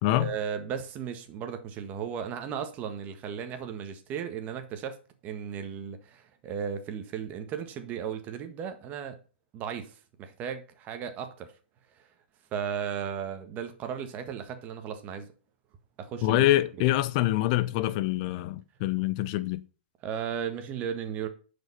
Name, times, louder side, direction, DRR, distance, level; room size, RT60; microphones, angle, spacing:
voice 1, 0.1-5.0 5.2-9.2 9.5-11.5 12.5-15.3 16.0-16.5 20.0-21.3, right 7 dB, 30° right, 1.5 m, -35 dB
voice 2, 16.2-19.6, left 15 dB, 40° left, 0.5 m, -25 dB
10.5 x 5.2 x 5.5 m
hypercardioid pair, 145°, 6 cm